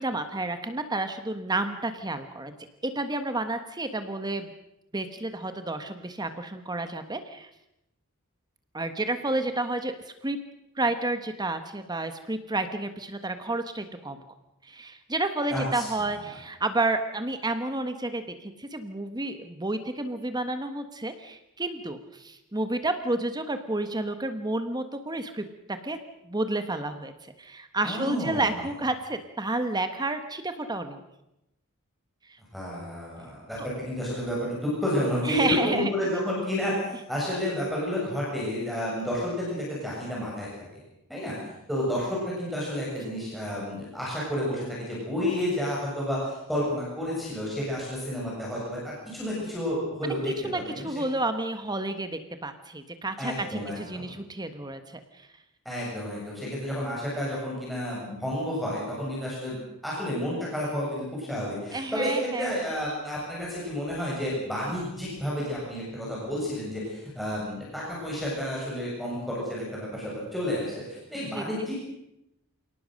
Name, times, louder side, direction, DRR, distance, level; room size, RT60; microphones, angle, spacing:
voice 1, 0.0-2.5 2.8-4.5 4.9-7.5 8.7-9.9 10.2-10.4 10.8-14.2 14.6-25.4 25.8-26.0 26.2-31.0 33.6-33.7 35.2-35.9 50.0-55.3 61.7-62.5 71.3-71.6, right 2 dB, 20° right, 8 dB, 1.4 m, -30 dB
voice 2, 15.5-16.2 27.8-28.7 32.5-40.5 41.1-50.9 53.2-54.1 55.7-71.8, left 1 dB, ahead, -5 dB, 7.3 m, -31 dB
28.0 x 18.5 x 6.6 m, 0.87 s
head